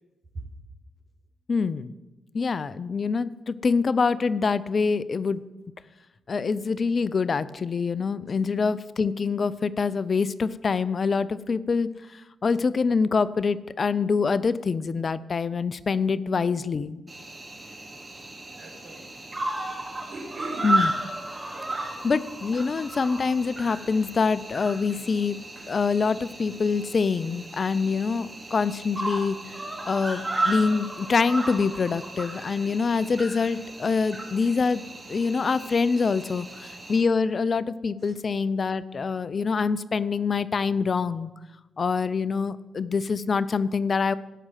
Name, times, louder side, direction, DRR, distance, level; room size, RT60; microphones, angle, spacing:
voice 1, 1.5-1.9 2.3-5.4 6.3-11.9 12.4-17.1 20.6-20.9 22.0-25.4 25.7-29.4 29.8-34.8 35.1-41.3 41.8-44.1, left 5 dB, 50° left, 17 dB, 0.6 m, -25 dB
Cricket, 17.1-37.0, right 2 dB, 25° right, 4.1 m, -34 dB
voice 2, 18.5-19.2 20.0-20.8 21.5-21.8 38.0-38.2, right 2 dB, 65° right, 2 dB, 4.1 m, -40 dB
17.0 x 6.2 x 7.5 m, 1.1 s
hypercardioid pair, 45°, 0 cm